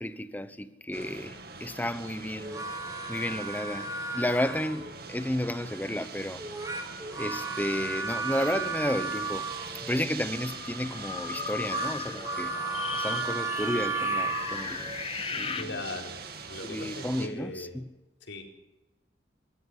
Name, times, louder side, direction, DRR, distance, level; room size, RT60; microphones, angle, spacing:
voice 1, 0.0-2.6 3.1-6.4 7.2-9.5 9.8-12.6 12.9-14.9 15.3-15.8 16.6-17.9, left 1 dB, 10° left, 0.9 m, -32 dB
sound 1, 0.9-17.3, right 4 dB, 55° right, 2.3 m, -43 dB
sound 2, 2.4-5.0 6.4-10.1 11.3-14.9, right 4 dB, 20° right, 3.5 m, -34 dB
sound 3, 10.3-15.6, left 6 dB, 30° left, 1.3 m, -37 dB
voice 2, 15.5-17.7 18.2-18.4, left 2 dB, 80° left, 4.5 m, -39 dB
22.5 x 14.0 x 8.2 m
head